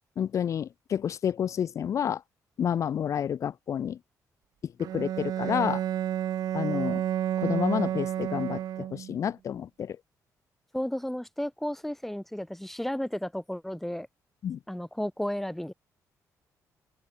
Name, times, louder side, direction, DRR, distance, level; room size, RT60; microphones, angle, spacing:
voice 1, 0.2-2.2 2.6-4.0 4.6-5.8 6.5-7.0 7.4-10.0 14.4-14.6, left 8 dB, 50° left, 0.5 m, -29 dB
Bowed string instrument, 4.8-9.2, right 11 dB, 70° right, 0.9 m, -30 dB
voice 2, 10.7-14.1 14.7-15.7, left 1 dB, 5° left, 2.6 m, -33 dB
open air
cardioid pair, 115°, 7 cm